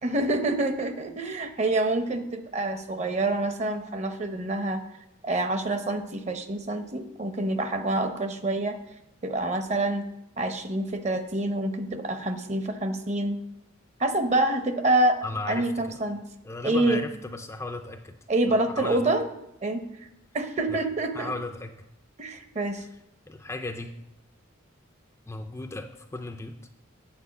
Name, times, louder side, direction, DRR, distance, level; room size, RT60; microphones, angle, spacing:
voice 1, 0.0-4.8 5.2-8.8 9.2-10.0 10.4-13.4 14.0-15.2 15.5-16.2 16.6-17.0 18.3-19.3 19.6-19.8 20.3-21.3 22.2-22.8, right 2 dB, 35° right, 8 dB, 0.7 m, -27 dB
voice 2, 15.2-16.0 16.4-18.2 18.5-19.1 20.7-20.8 21.1-21.7 23.3-23.9 25.3-26.6, left 2 dB, 15° left, 6 dB, 0.4 m, -36 dB
8.8 x 4.5 x 7.0 m, 0.85 s
head